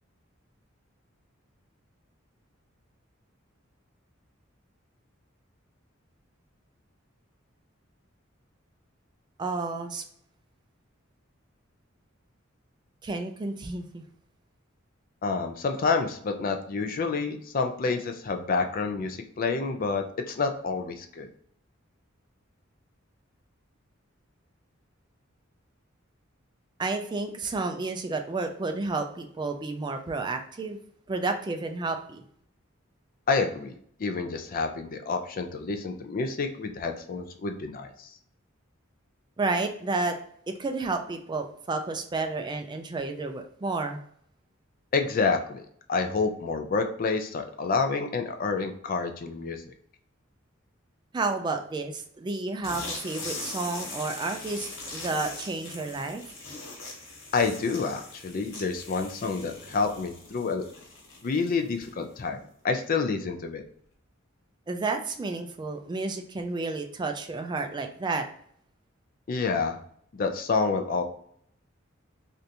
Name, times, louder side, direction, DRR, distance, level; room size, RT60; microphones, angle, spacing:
voice 1, 9.4-10.0 13.0-14.0 26.8-30.8 31.1-32.2 39.4-40.2 40.5-44.0 51.1-56.2 64.7-68.3, right 3 dB, 20° right, 6 dB, 0.3 m, -31 dB
voice 2, 15.2-21.3 33.3-38.1 44.9-45.6 45.9-49.7 57.3-60.6 61.2-63.6 69.3-69.8 70.1-71.0, left 4 dB, 45° left, 6 dB, 0.4 m, -28 dB
sound 1, 52.6-62.1, left 2 dB, 75° left, 1.3 m, -41 dB
3.3 x 2.6 x 2.7 m, 0.64 s
head